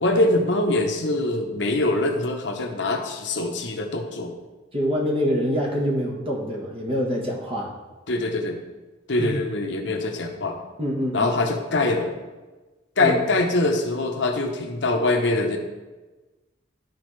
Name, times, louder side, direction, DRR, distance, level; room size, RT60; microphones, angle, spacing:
voice 1, 0.0-4.3 8.1-8.6 9.1-10.6 11.1-12.1 13.0-15.6, left 2 dB, 65° left, 3 dB, 0.9 m, -23 dB
voice 2, 4.7-7.7 9.2-9.4 10.8-11.3 13.0-13.2, equal, 30° right, -2 dB, 1.3 m, -25 dB
12.0 x 4.3 x 3.2 m, 1.2 s
head